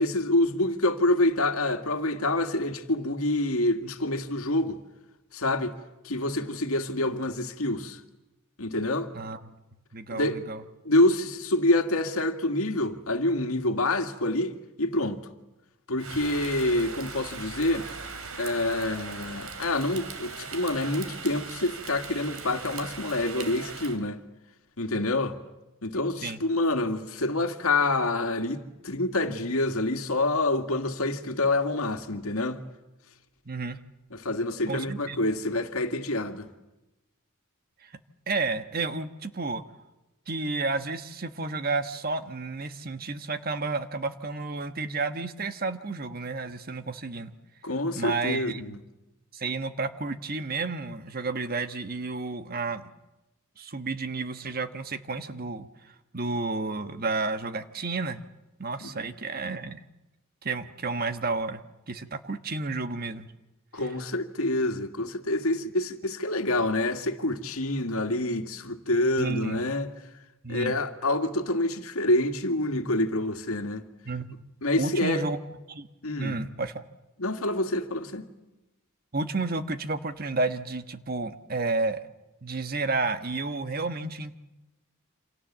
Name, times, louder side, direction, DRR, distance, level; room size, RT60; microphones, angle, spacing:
voice 1, 0.0-4.8 5.3-5.8 6.0-8.0 8.6-9.1 10.1-10.4 10.9-15.3 15.9-17.9 18.4-24.2 24.8-25.4 25.8-32.6 34.1-36.5 47.6-48.8 58.8-59.1 63.7-69.9 70.5-73.8 74.6-75.2 76.0-76.4 77.2-78.2, left 2 dB, 90° left, 2.0 m, -27 dB
voice 2, 9.1-9.5 9.9-10.6 26.2-26.4 33.4-33.8 34.7-35.2 37.8-37.9 38.3-39.6 40.3-47.3 48.0-48.8 49.3-52.8 53.6-58.2 58.6-59.8 60.4-63.3 63.8-63.9 69.2-69.6 70.4-70.8 74.0-74.4 74.8-75.4 75.7-75.9 76.2-76.8 79.1-82.0 82.4-84.3, right 3 dB, 45° right, 1.3 m, -31 dB
Rain, 16.0-24.0, right 4 dB, 90° right, 3.0 m, -39 dB
28.0 x 27.0 x 7.4 m
head